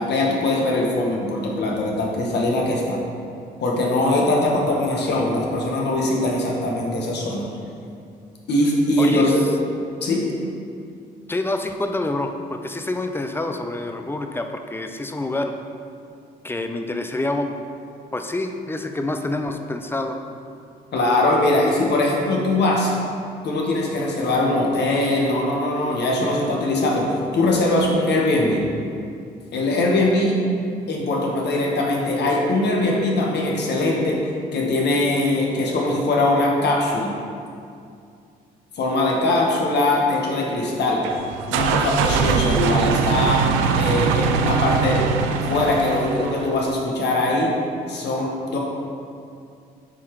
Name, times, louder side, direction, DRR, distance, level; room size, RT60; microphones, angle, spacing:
voice 1, 0.0-3.0 3.6-7.5 8.5-9.4 10.0-10.2 20.9-22.9 23.4-28.6 29.5-30.3 30.9-34.2 34.5-37.1 38.8-41.0 41.5-43.4 43.7-45.0 45.5-47.5 47.9-48.6, left 2 dB, 60° left, -2 dB, 1.3 m, -21 dB
voice 2, 9.0-9.3 11.3-15.5 16.4-17.5 18.1-20.2, left 2 dB, 10° left, 5 dB, 0.5 m, -27 dB
sound 1, 41.0-46.6, right 6 dB, 75° right, 0.4 m, -22 dB
7.0 x 4.7 x 3.1 m, 2.4 s
hypercardioid pair, 50°, 20 cm